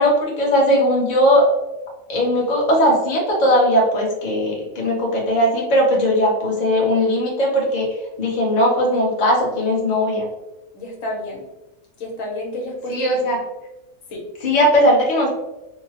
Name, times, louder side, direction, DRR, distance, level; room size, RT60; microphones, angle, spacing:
voice 1, 0.0-1.4 2.1-7.9 8.2-10.3 12.9-13.4 14.4-15.3, equal, 35° left, -3 dB, 0.8 m, -18 dB
voice 2, 10.7-11.4 12.0-13.3 14.1-14.3, left 1 dB, 75° left, -2 dB, 1.3 m, -30 dB
4.7 x 2.1 x 2.8 m, 1.0 s
omnidirectional pair, 1.4 m